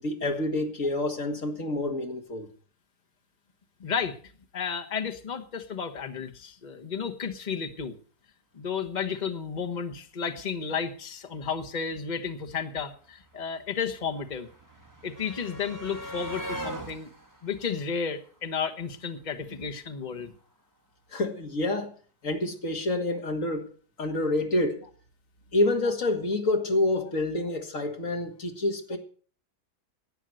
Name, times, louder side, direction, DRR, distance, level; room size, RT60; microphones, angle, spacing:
voice 1, 0.0-2.5 21.1-21.9 22.2-23.7 24.0-24.9 25.5-29.0, left 2 dB, 55° left, 2.3 m, -27 dB
voice 2, 3.8-4.2 4.5-7.9 8.5-14.5 15.0-17.1 17.4-20.3, left 6 dB, 30° left, 1.2 m, -32 dB
sound 1, 12.4-12.5 12.6-18.8 20.0-20.1 20.4-20.5, right 1 dB, 10° right, 2.0 m, -41 dB
12.0 x 9.1 x 7.7 m
omnidirectional pair, 1.7 m